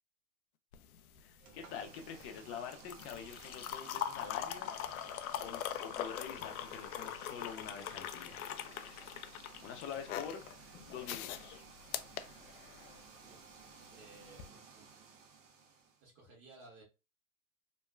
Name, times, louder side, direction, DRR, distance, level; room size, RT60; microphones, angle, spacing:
sound 1, 0.7-13.0 14.3-14.5, left 10 dB, 80° left, 0.5 m, -42 dB
voice 1, 1.2-4.7 5.4-8.4 9.6-11.6, left 7 dB, 30° left, 0.6 m, -46 dB
sound 2, 1.4-16.0, right 5 dB, 55° right, 0.8 m, -56 dB
voice 2, 13.2-13.5 13.9-15.0 16.0-16.8, right 2 dB, 35° right, 1.3 m, -58 dB
3.1 x 2.2 x 2.3 m
hypercardioid pair, 135°, 42 cm